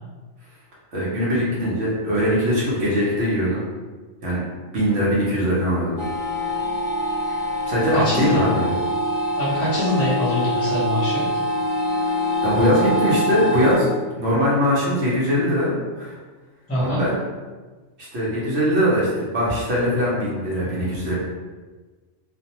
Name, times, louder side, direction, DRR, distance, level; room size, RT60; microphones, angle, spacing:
voice 1, 0.9-3.6 4.2-4.4 4.7-6.0 7.7-8.8 12.0-12.1 12.4-13.9 14.2-16.1 16.8-17.2 18.1-21.1, equal, 60° right, -7 dB, 0.9 m, -21 dB
sound 1, 6.0-13.7, left 1 dB, 55° left, 0.6 m, -24 dB
voice 2, 7.9-8.4 9.4-11.2 16.7-17.0, left 1 dB, 15° left, -9 dB, 0.7 m, -24 dB
2.5 x 2.1 x 2.8 m, 1.3 s
omnidirectional pair, 1.4 m